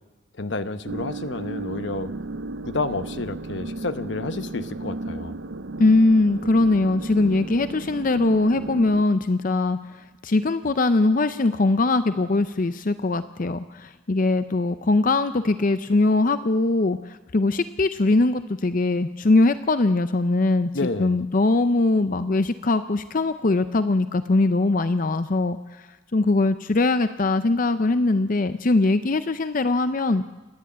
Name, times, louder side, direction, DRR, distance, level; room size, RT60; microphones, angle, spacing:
voice 1, 0.4-2.1 2.7-5.3 20.7-21.2, left 3 dB, 60° left, 11 dB, 1.0 m, -30 dB
sound 1, 0.9-9.0, right 2 dB, 60° right, 0.7 m, -34 dB
voice 2, 5.8-9.8 10.2-20.7 21.0-30.3, left 2 dB, 40° left, 11 dB, 0.5 m, -21 dB
28.5 x 11.0 x 8.6 m, 1.2 s
head